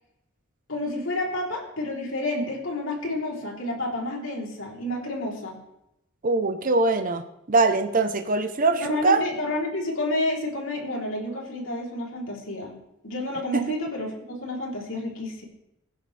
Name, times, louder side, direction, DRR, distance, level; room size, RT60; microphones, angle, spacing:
voice 1, 0.7-5.6 8.8-12.7 13.0-15.4, left 1 dB, 80° left, -1 dB, 3.7 m, -30 dB
voice 2, 6.2-7.2 7.5-9.2 13.5-13.8, right 3 dB, 45° right, 7 dB, 0.9 m, -22 dB
22.0 x 10.5 x 3.5 m, 0.86 s
head